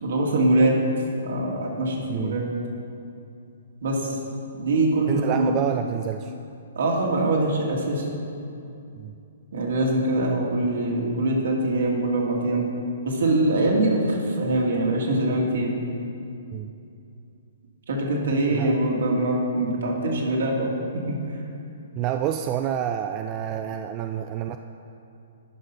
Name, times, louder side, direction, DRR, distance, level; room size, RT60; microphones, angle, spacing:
voice 1, 0.0-0.8 1.2-2.4 3.8-4.2 4.6-5.6 6.8-8.1 9.5-12.7 13.0-15.7 17.9-20.7 21.1-21.2, right 2 dB, 70° right, -2 dB, 2.2 m, -23 dB
voice 2, 2.1-2.4 5.1-6.3 9.0-9.1 16.5-16.7 18.5-18.7 22.0-24.6, right 10 dB, 30° right, 6 dB, 0.3 m, -28 dB
10.5 x 5.4 x 5.6 m, 2.6 s
hypercardioid pair, 130°, 0 cm